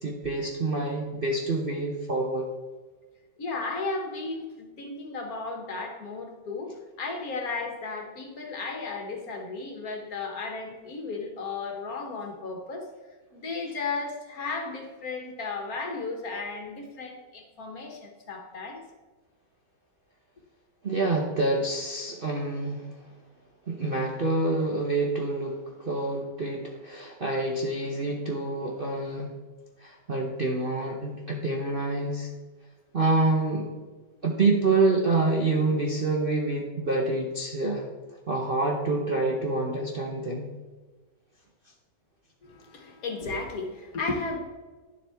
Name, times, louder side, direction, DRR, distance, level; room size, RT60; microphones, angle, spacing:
voice 1, 0.0-2.5 20.8-22.9 23.7-29.3 29.8-32.3 32.9-33.7 34.2-37.8 38.3-40.5, right 2 dB, 45° right, -1 dB, 0.8 m, -27 dB
voice 2, 3.4-6.7 7.0-12.8 13.3-18.8 42.4-44.4, left 3 dB, 55° left, 2 dB, 1.6 m, -34 dB
10.0 x 7.3 x 3.5 m, 1.3 s
omnidirectional pair, 2.0 m